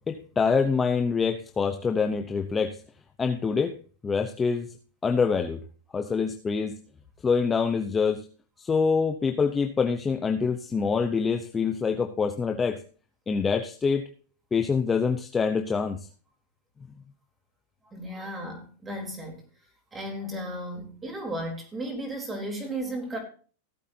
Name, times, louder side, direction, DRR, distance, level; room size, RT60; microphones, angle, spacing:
voice 1, 0.1-2.8 3.2-3.7 4.0-4.7 5.0-5.6 5.9-6.8 7.2-8.3 8.6-12.8 13.3-14.1 14.5-16.1, left 5 dB, 15° left, 4 dB, 0.8 m, -25 dB
voice 2, 17.9-19.4 19.9-23.2, right 1 dB, 15° right, 2 dB, 3.7 m, -34 dB
18.0 x 8.3 x 2.8 m, 0.39 s
supercardioid pair, 155°, 0 cm